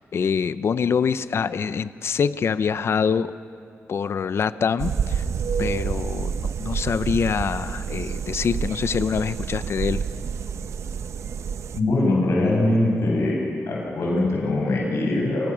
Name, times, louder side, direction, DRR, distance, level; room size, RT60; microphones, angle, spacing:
voice 1, 0.1-3.3 3.9-5.2 5.6-10.0, left 6 dB, 60° left, 14 dB, 0.7 m, -25 dB
sound 1, 4.8-11.8, right 6 dB, 75° right, 0.8 m, -28 dB
voice 2, 11.7-13.4 13.7-15.5, left 2 dB, 85° left, -3 dB, 8.0 m, -22 dB
28.0 x 23.5 x 6.4 m, 2.4 s
wide cardioid pair, 125°, 5 cm